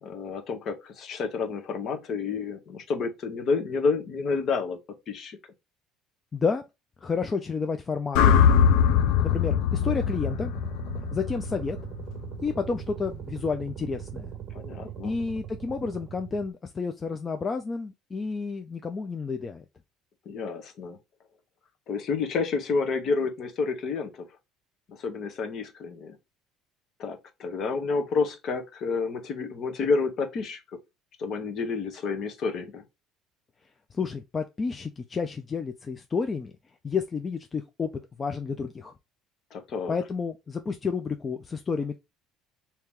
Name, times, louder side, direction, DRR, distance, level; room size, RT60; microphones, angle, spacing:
voice 1, 0.0-4.8 5.1-5.4 14.5-15.1 20.3-21.0 21.9-24.2 24.9-26.2 27.0-30.6 31.2-32.8 39.5-39.9, left 4 dB, 50° left, 1.0 m, -29 dB
voice 2, 6.3-6.6 7.0-8.4 9.3-10.5 11.1-11.8 12.4-14.3 15.0-19.6 33.9-36.5 36.8-37.9 38.2-38.9 39.9-42.0, left 5 dB, 25° left, 0.4 m, -30 dB
sound 1, 8.1-12.4, left 7 dB, 80° left, 0.5 m, -22 dB
sound 2, 9.7-16.5, right 10 dB, 45° right, 0.7 m, -40 dB
3.0 x 2.8 x 3.5 m
cardioid pair, 115°, 0 cm